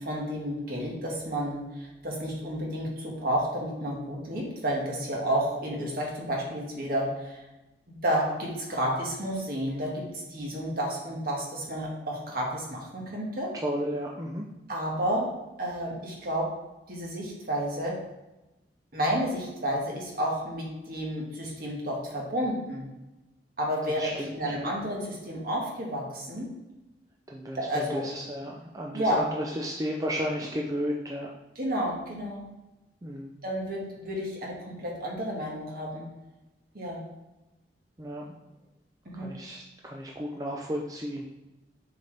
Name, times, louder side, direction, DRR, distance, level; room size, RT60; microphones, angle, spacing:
voice 1, 0.0-7.4 8.0-10.0 10.3-13.5 14.7-15.3 15.6-16.5 16.9-17.9 18.9-22.8 23.6-26.5 27.5-28.0 28.9-29.2 31.5-32.4 33.4-36.1 36.7-37.0 39.0-39.3, equal, 55° right, -2 dB, 1.7 m, -31 dB
voice 2, 13.6-14.5 24.0-24.7 27.3-31.3 33.0-33.3 38.0-38.4 39.1-41.2, equal, 20° right, -1 dB, 0.5 m, -33 dB
6.8 x 4.1 x 3.4 m, 1.0 s
head